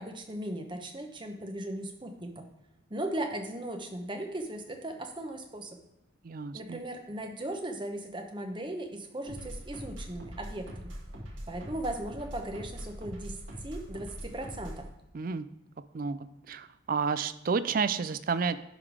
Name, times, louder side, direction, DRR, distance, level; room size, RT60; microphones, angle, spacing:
voice 1, 0.0-2.5 2.9-5.8 6.5-10.9 11.5-13.4 13.6-14.9, right 1 dB, 25° right, 4 dB, 0.9 m, -37 dB
voice 2, 6.2-6.8 15.1-15.5 15.9-16.2 16.5-18.6, right 5 dB, 45° right, 13 dB, 0.4 m, -30 dB
sound 1, 9.3-14.9, equal, 70° right, 1.7 m, -42 dB
11.0 x 3.9 x 4.8 m, 0.90 s
head